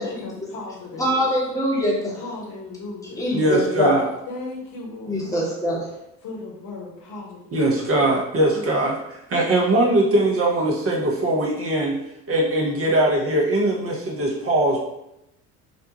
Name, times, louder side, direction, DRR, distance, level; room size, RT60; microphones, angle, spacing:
voice 1, 0.0-1.3 2.1-3.5 4.3-5.5 6.2-8.1 8.5-8.7, left 3 dB, 50° left, -2 dB, 0.9 m, -37 dB
voice 2, 1.0-2.2 3.2-4.0 5.1-5.9, equal, 10° left, -4 dB, 1.0 m, -23 dB
voice 3, 3.3-4.0 7.5-12.0 12.3-14.8, right 1 dB, 35° right, -2 dB, 0.7 m, -21 dB
2.5 x 2.2 x 2.8 m, 0.85 s
figure-of-eight pair, 55°, 41 cm